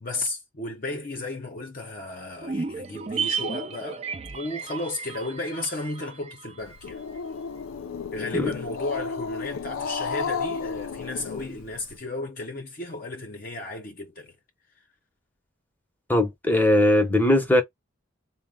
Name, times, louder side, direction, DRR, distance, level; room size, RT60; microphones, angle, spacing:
voice 1, 0.0-4.0 4.3-7.0 8.1-14.3, left 2 dB, 45° left, 0.7 m, -34 dB
sound 1, 2.4-6.9 7.2-7.3, right 5 dB, 30° right, 0.4 m, -33 dB
Growling, 6.6-12.0, left 5 dB, 85° left, 0.4 m, -33 dB
voice 2, 16.1-17.6, left 1 dB, 10° left, 0.7 m, -20 dB
3.9 x 2.1 x 3.6 m
head